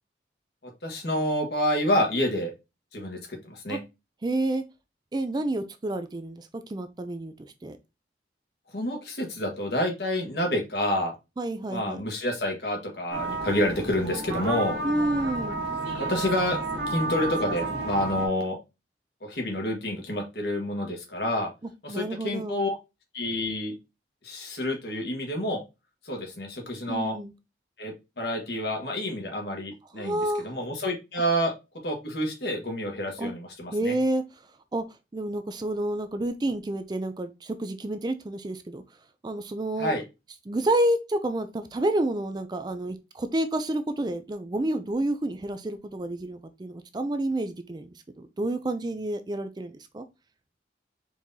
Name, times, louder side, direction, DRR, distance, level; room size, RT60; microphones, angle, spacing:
voice 1, 0.6-2.5 2.9-3.8 8.7-11.1 11.7-14.8 16.0-16.6 16.9-18.6 19.2-21.5 21.8-22.7 23.1-23.7 24.2-25.6 26.0-27.2 27.8-31.5 31.8-34.0 39.8-40.0, left 1 dB, 60° left, 1.5 m, -28 dB
voice 2, 4.2-4.6 5.1-7.3 7.6-7.8 11.4-12.1 14.8-15.6 21.9-22.6 26.9-27.3 30.0-30.5 33.2-33.3 33.7-34.2 34.7-34.8 35.1-38.8 39.2-39.9 40.5-47.9 48.2-50.0, right 1 dB, 25° right, 0.4 m, -29 dB
sound 1, 13.1-18.3, right 2 dB, 70° right, 1.5 m, -31 dB
4.6 x 3.7 x 2.7 m
head